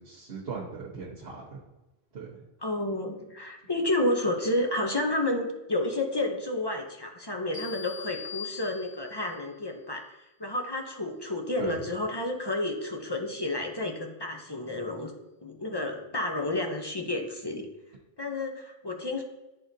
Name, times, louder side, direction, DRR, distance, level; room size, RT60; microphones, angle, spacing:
voice 1, 0.0-1.6 2.1-2.4 11.6-11.8, right 5 dB, 55° right, -6 dB, 1.3 m, -38 dB
voice 2, 2.6-15.1 15.4-17.7 18.2-19.2, left 2 dB, 30° left, 2 dB, 0.5 m, -30 dB
sound 1, 7.5-9.4, left 8 dB, 10° right, 2.0 m, -42 dB
11.0 x 3.7 x 2.7 m, 1.0 s
omnidirectional pair, 1.2 m